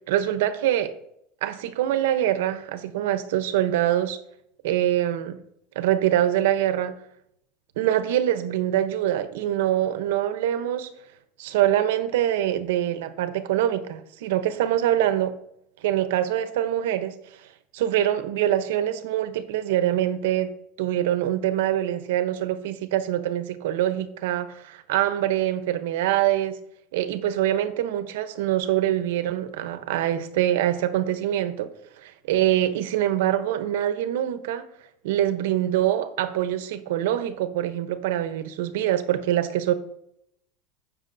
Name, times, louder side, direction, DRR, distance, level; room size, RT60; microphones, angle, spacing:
voice 1, 0.1-0.9 1.4-4.2 4.6-5.4 5.8-6.9 7.8-10.9 11.4-15.4 15.8-17.2 17.7-20.5 20.8-26.6 26.9-31.7 32.0-34.7 35.0-39.7, right 12 dB, 90° right, 0.8 m, -24 dB
16.0 x 6.3 x 2.6 m
supercardioid pair, 165°, 0 cm